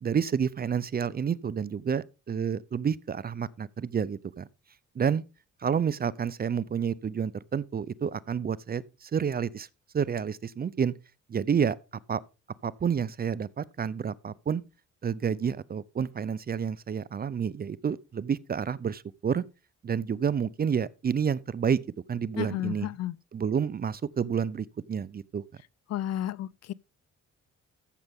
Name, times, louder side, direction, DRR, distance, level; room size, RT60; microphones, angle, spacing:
voice 1, 0.0-4.5 5.0-5.2 5.6-9.7 9.9-10.9 11.3-11.8 12.1-12.2 12.6-14.6 15.0-19.4 19.8-21.8 22.1-22.9 23.3-25.4, right 7 dB, 30° right, 0.5 m, -29 dB
voice 2, 22.4-23.2 25.9-26.7, left 12 dB, 60° left, 0.5 m, -32 dB
14.0 x 6.6 x 3.6 m
cardioid pair, 90°, 30 cm